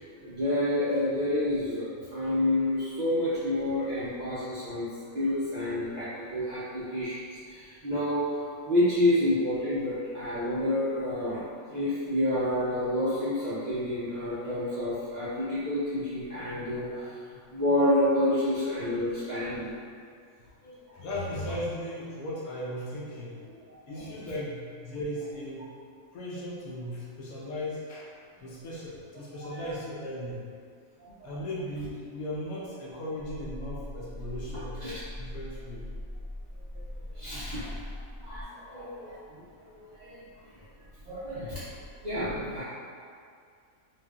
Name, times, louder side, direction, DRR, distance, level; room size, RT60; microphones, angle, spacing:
voice 1, 0.2-7.2 7.5-11.4 11.7-17.2 17.5-19.7 20.6-20.7 23.7-24.1 29.3-29.6 31.0-31.3 34.8-35.0 37.1-37.8 38.2-40.5 41.1-41.6 42.0-42.6, left 1 dB, 65° right, -12 dB, 0.4 m, -29 dB
voice 2, 20.9-23.4 23.9-25.7 26.1-28.1 28.4-30.4 31.2-35.9, left 1 dB, 85° left, -5 dB, 1.0 m, -37 dB
sound 1, 33.2-38.4, left 1 dB, 60° left, 1.4 m, -40 dB
3.1 x 2.4 x 2.3 m, 2.2 s
omnidirectional pair, 1.5 m